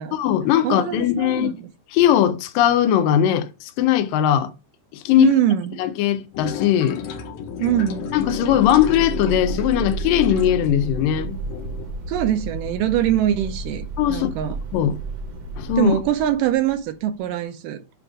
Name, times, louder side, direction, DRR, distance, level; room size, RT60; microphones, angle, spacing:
voice 1, 0.1-1.5 1.9-4.5 4.9-5.3 5.8-7.0 8.1-11.4 14.0-14.3 14.7-15.0 15.6-16.0, left 11 dB, 90° left, 2.3 m, -19 dB
voice 2, 0.6-1.7 5.2-5.8 7.6-8.1 12.1-14.6 15.8-17.8, right 11 dB, 80° right, 2.3 m, -23 dB
sound 1, 6.3-11.9, left 7 dB, 75° left, 2.1 m, -32 dB
sound 2, 7.8-17.1, right 3 dB, 65° right, 1.5 m, -32 dB
7.7 x 2.6 x 4.8 m
omnidirectional pair, 3.9 m